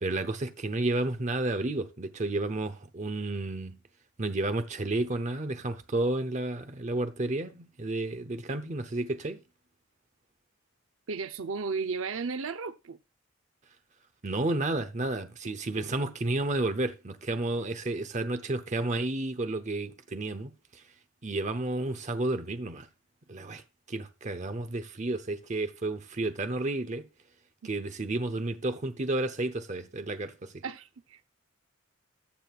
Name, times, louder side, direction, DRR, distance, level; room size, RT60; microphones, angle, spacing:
voice 1, 0.0-3.8 4.2-9.4 14.2-20.8 21.2-22.9 23.3-23.6 23.9-27.0 27.6-30.6, right 2 dB, 35° right, 0.8 m, -31 dB
voice 2, 11.1-13.0 30.6-31.2, right 4 dB, 70° right, 0.6 m, -34 dB
14.0 x 7.8 x 2.4 m
head